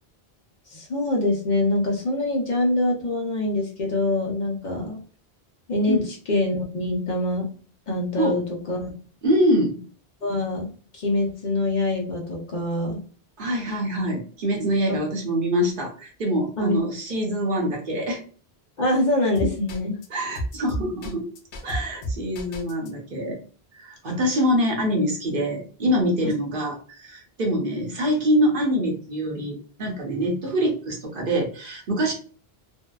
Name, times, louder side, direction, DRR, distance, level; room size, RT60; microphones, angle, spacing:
voice 1, 0.7-5.0 5.7-7.5 7.9-8.9 10.2-13.0 14.9-15.0 16.6-16.8 18.8-20.0 26.2-26.3, left 1 dB, 50° left, -1 dB, 0.7 m, -24 dB
voice 2, 9.2-9.8 13.4-18.2 20.1-21.3 21.6-23.4 23.7-32.1, equal, 60° right, 0 dB, 0.8 m, -24 dB
sound 1, 19.4-20.1 20.4-22.9, equal, 85° left, 0.8 m, -30 dB
2.6 x 2.1 x 2.2 m, 0.41 s
omnidirectional pair, 1.1 m